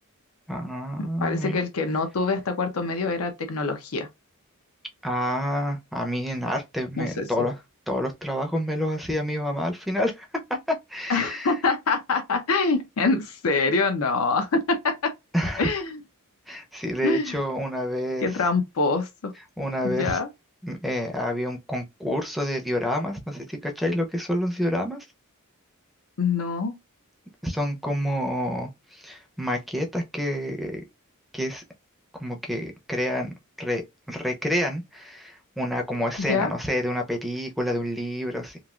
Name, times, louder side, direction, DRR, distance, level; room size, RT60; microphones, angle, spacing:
voice 1, 0.5-1.6 5.0-7.6 7.9-10.3 10.7-11.5 15.3-15.7 16.5-18.3 19.6-20.2 20.6-25.0 27.4-30.8 31.3-31.6 32.1-33.3 33.6-33.8 34.1-38.6, equal, ahead, 0.5 m, -28 dB
voice 2, 1.0-4.1 7.0-7.3 11.1-15.1 15.6-16.0 17.0-17.4 18.2-19.3 19.8-20.3 26.2-26.8 36.3-36.5, left 4 dB, 70° left, 0.6 m, -25 dB
3.1 x 2.4 x 2.3 m
head